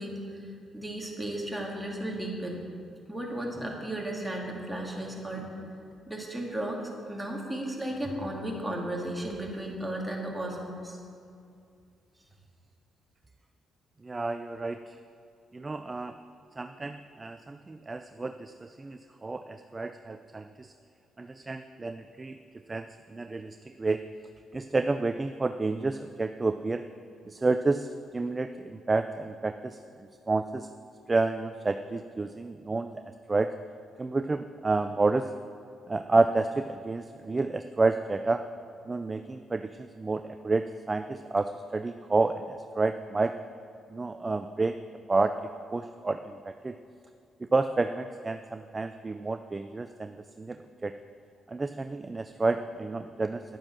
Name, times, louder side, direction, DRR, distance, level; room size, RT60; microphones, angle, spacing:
voice 1, 0.0-2.7 3.1-5.6 6.1-11.0, right 1 dB, 5° right, -2 dB, 2.4 m, -35 dB
voice 2, 14.0-14.8 15.5-16.1 16.6-20.7 21.2-22.4 22.7-22.8 23.1-24.0 24.5-26.8 27.3-27.9 28.1-29.8 30.3-30.7 31.1-32.9 33.3-33.5 34.0-35.3 35.9-38.4 38.9-43.3 43.9-44.8 45.1-45.4 45.7-46.7 47.4-50.1 50.4-50.9 51.5-53.4, right 3 dB, 25° right, 9 dB, 0.4 m, -29 dB
10.5 x 9.0 x 6.1 m, 2.5 s
cardioid pair, 90°, 0 cm